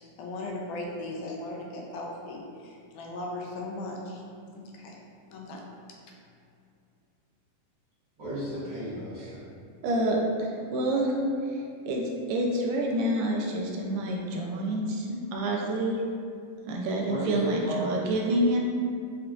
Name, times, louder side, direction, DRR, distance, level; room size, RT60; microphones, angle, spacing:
voice 1, 0.0-4.2 4.5-4.9 5.3-5.6, left 2 dB, 80° left, -1 dB, 1.9 m, -37 dB
voice 2, 8.2-9.4 17.1-18.1, right 1 dB, 70° right, -15 dB, 1.0 m, -34 dB
voice 3, 9.8-11.1 11.4-16.0 16.7-18.6, right 1 dB, 85° right, -1 dB, 2.2 m, -28 dB
5.5 x 2.3 x 3.7 m, 2.4 s
omnidirectional pair, 3.8 m